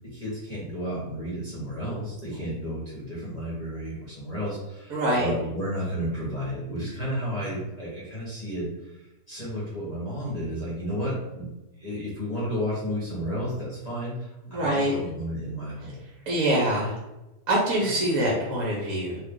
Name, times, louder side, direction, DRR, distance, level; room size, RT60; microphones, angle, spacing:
voice 1, 0.1-8.7 8.9-11.5 11.8-16.0 17.8-18.2, equal, 30° left, -8 dB, 0.9 m, -32 dB
voice 2, 4.9-5.3 14.5-14.9 16.3-17.0 17.5-19.2, right 1 dB, 65° right, -4 dB, 1.1 m, -24 dB
2.8 x 2.4 x 3.6 m, 1.0 s
omnidirectional pair, 1.7 m